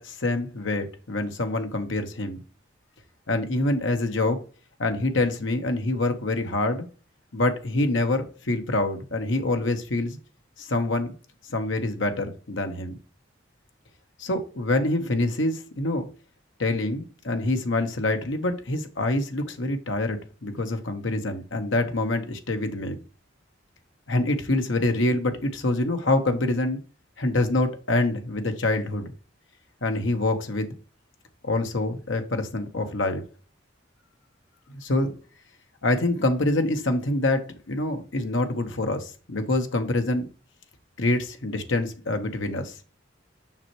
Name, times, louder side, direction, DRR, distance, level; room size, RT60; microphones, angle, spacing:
voice 1, 0.0-2.4 3.3-4.4 4.8-6.8 7.3-10.2 10.6-11.1 11.5-12.9 14.2-16.1 16.6-23.0 24.1-26.8 27.2-29.1 29.8-30.7 31.4-33.2 34.7-35.1 35.8-40.3 41.0-42.7, left 2 dB, 75° left, 6 dB, 1.2 m, -26 dB
7.3 x 5.6 x 3.1 m, 0.36 s
head